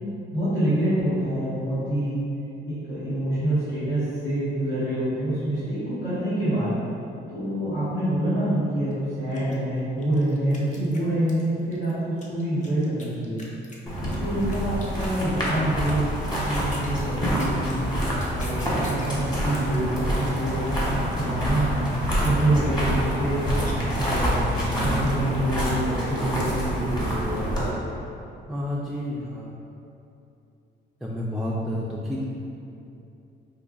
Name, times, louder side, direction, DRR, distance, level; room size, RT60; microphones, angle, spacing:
voice 1, 0.3-2.2 2.6-6.7 7.3-13.4 14.2-16.0 16.4-17.9 18.3-20.9 21.2-21.8 22.1-23.4 23.9-24.4 24.8-27.0, right 1 dB, 80° left, -14 dB, 1.3 m, -26 dB
sound 1, 8.9-9.0 9.3-11.4 11.7-15.6 15.8-16.1 16.4-19.2 19.5-25.4, left 2 dB, 40° left, 0.6 m, -45 dB
sound 2, 13.9-27.7, equal, 20° left, 1.1 m, -27 dB
voice 2, 28.5-29.6 31.0-32.3, left 1 dB, ahead, -6 dB, 0.3 m, -30 dB
5.1 x 2.5 x 2.3 m, 2.7 s
cardioid pair, 90°, 20 cm